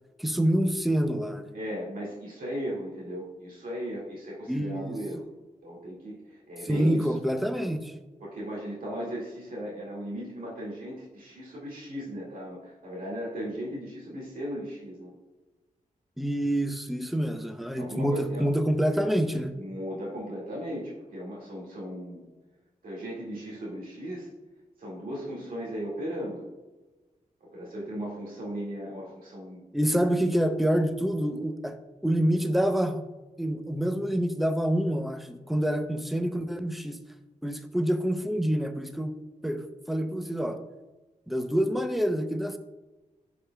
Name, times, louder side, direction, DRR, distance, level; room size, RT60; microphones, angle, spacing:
voice 1, 0.2-1.5 4.5-5.0 6.6-7.9 16.2-19.5 29.7-31.8 32.0-33.0 33.4-37.0 37.4-39.2 39.4-40.6 41.3-42.6, equal, ahead, 8 dB, 0.5 m, -27 dB
voice 2, 1.5-5.2 5.6-7.1 8.2-15.2 17.7-18.5 19.6-22.2 22.8-24.3 24.8-26.5 27.4-29.7, equal, 90° right, -5 dB, 1.9 m, -36 dB
10.5 x 5.0 x 2.2 m, 1.1 s
wide cardioid pair, 110°, 14 cm